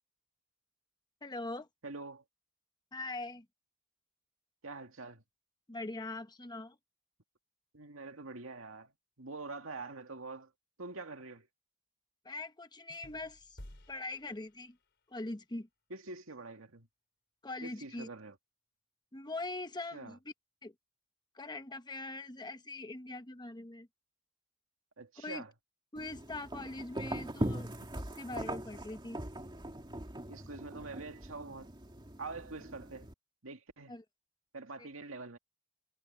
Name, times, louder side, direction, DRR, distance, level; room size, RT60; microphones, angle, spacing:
voice 1, 1.2-1.7 2.9-3.5 5.7-6.8 12.2-13.6 13.9-14.8 15.1-15.7 17.4-18.1 19.1-20.3 20.6-20.7 21.3-23.9 25.2-25.4 25.9-27.7 28.0-29.2 33.9-34.0 34.8-34.9, left 2 dB, 20° left, 1.1 m, -42 dB
voice 2, 1.8-2.2 4.6-5.2 7.7-8.9 9.2-10.5 10.8-11.5 15.9-16.9 17.6-18.4 19.9-20.2 25.0-25.5 30.3-31.7 32.2-33.1 33.4-33.9 34.5-35.4, right 3 dB, 85° right, 2.2 m, -45 dB
sound 1, 12.9-15.1, left 1 dB, 60° left, 3.6 m, -55 dB
sound 2, 26.0-33.1, right 1 dB, 25° right, 2.4 m, -41 dB
head